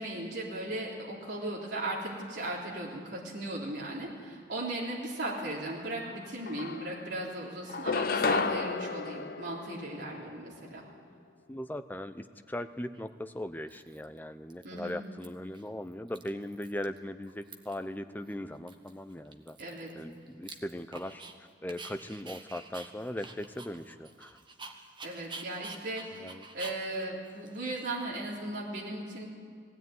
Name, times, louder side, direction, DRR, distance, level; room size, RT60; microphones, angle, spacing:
voice 1, 0.0-10.8 14.6-15.0 19.6-19.9 25.0-29.3, right 1 dB, 70° right, -4 dB, 3.6 m, -37 dB
sound 1, 6.0-6.1 6.5-7.2 7.7-10.3, left 4 dB, 50° left, 0.7 m, -32 dB
voice 2, 11.5-19.6 19.9-21.2 21.6-24.3 26.2-26.5, left 1 dB, 10° left, 9 dB, 0.6 m, -39 dB
Dog, 12.9-13.0 13.7-14.2 14.5-15.3 15.5-15.7 15.9-17.0 17.2-17.9 18.2-18.3 18.7-21.3 21.7-28.3, right 3 dB, 25° right, 1.3 m, -48 dB
19.0 x 16.0 x 9.4 m, 2.1 s
head